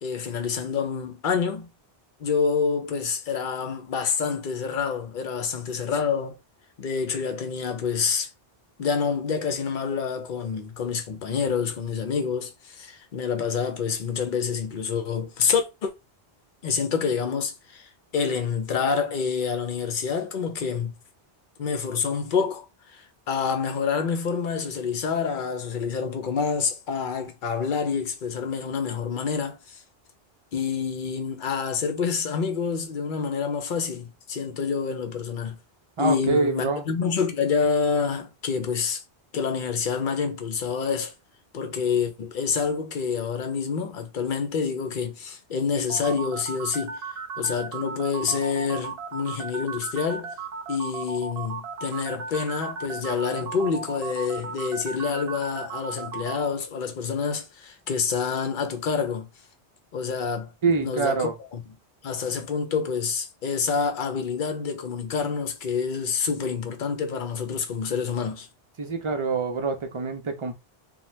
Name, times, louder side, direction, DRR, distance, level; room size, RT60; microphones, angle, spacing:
voice 1, 0.0-1.7 2.2-6.4 6.8-8.3 8.8-15.9 16.6-20.9 21.6-29.8 30.5-35.6 36.0-39.0 39.3-41.1 41.5-47.0 47.4-50.3 50.7-59.3 59.9-60.5 60.8-61.6 62.0-68.5, left 6 dB, 60° left, 0.7 m, -27 dB
voice 2, 36.0-36.9 60.6-61.3 68.8-70.5, right 4 dB, 40° right, 0.5 m, -25 dB
sound 1, 45.9-56.5, right 5 dB, 70° right, 0.8 m, -35 dB
2.7 x 2.2 x 3.1 m
omnidirectional pair, 1.0 m